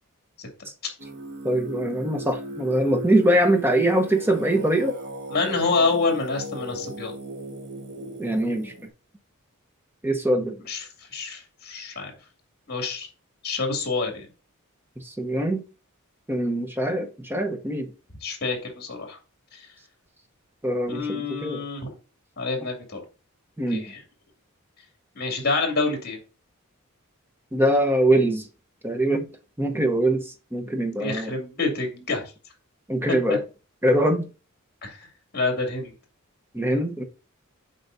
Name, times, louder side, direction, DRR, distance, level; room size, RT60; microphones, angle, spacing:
Singing, 1.0-8.9, equal, 50° right, 1.5 m, -37 dB
voice 1, 1.4-5.0 8.2-8.7 10.0-10.6 15.0-15.6 16.3-17.9 20.6-21.6 23.6-23.8 27.5-28.5 28.8-29.3 29.6-31.3 32.9-33.4 33.8-34.2 36.5-37.0, right 1 dB, 10° right, 0.9 m, -23 dB
voice 2, 5.3-7.1 10.7-12.1 12.7-13.1 13.4-14.3 18.2-19.2 19.5-19.7 20.9-21.9 22.4-23.0 23.7-24.0 25.1-26.2 31.0-32.3 34.8-35.0 35.3-35.9, left 3 dB, 45° left, 2.4 m, -27 dB
8.1 x 5.4 x 2.6 m
head